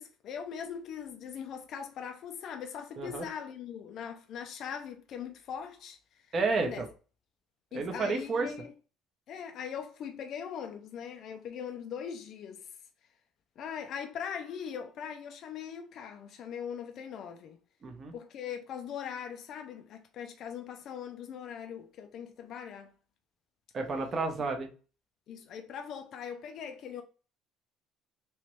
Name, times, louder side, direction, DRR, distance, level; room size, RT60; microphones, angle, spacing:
voice 1, 0.0-6.3 6.6-6.8 7.7-8.7 9.3-12.7 13.6-17.6 18.1-22.9 25.3-27.0, left 8 dB, 45° left, 0.4 m, -41 dB
voice 2, 6.3-6.9 7.7-8.5 17.8-18.1 23.7-24.7, right 3 dB, 25° right, 0.7 m, -31 dB
3.2 x 3.0 x 3.0 m
cardioid pair, 170°, 0 cm